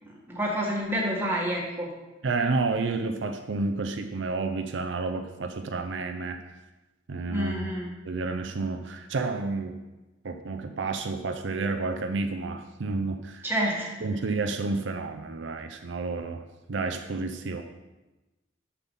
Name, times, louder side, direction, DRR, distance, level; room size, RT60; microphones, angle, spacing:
voice 1, 0.1-1.9 7.3-7.9 13.4-13.9, equal, 10° right, -3 dB, 1.6 m, -28 dB
voice 2, 2.2-6.4 7.1-7.5 8.1-9.8 10.2-13.5 14.0-16.4 16.7-17.6, right 3 dB, 75° right, 7 dB, 0.5 m, -30 dB
7.0 x 5.9 x 5.4 m, 1.1 s
head